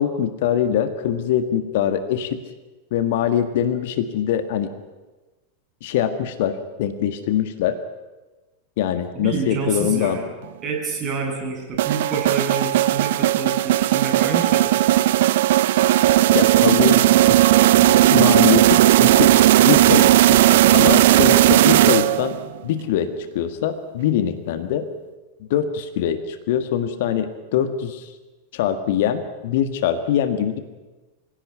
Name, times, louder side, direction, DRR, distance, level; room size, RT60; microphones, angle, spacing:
voice 1, 0.0-2.4 2.9-4.7 5.8-7.8 8.8-10.2 16.3-17.3 17.8-20.4 20.7-22.4 22.6-23.1 23.3-24.9 25.5-28.1 28.5-30.6, left 9 dB, 50° left, 9 dB, 1.6 m, -23 dB
voice 2, 9.1-10.3 10.6-14.8, right 5 dB, 30° right, 1 dB, 8.0 m, -28 dB
sound 1, 11.8-22.4, right 14 dB, 55° right, 0.7 m, -16 dB
26.0 x 16.5 x 9.4 m, 1.2 s
figure-of-eight pair, 90°, 0 cm